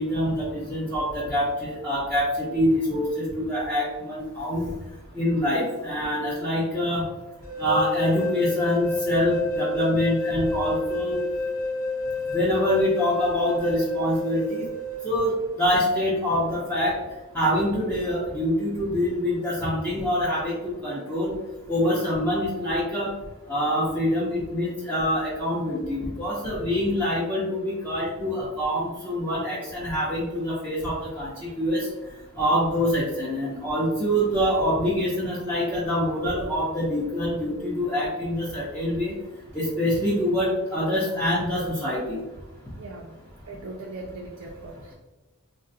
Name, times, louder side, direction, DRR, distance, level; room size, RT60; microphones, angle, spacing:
voice 1, 0.0-4.7 5.1-7.0 7.6-11.2 12.3-14.7 15.0-17.0 17.3-21.3 21.7-23.1 23.5-31.9 32.4-39.1 39.5-42.2, equal, 5° left, -9 dB, 0.6 m, -25 dB
sound 1, 7.4-15.0, left 2 dB, 40° left, 0.8 m, -29 dB
voice 2, 42.8-43.2 43.5-44.9, right 2 dB, 60° right, 0 dB, 0.4 m, -39 dB
3.7 x 2.1 x 2.6 m, 1.1 s
head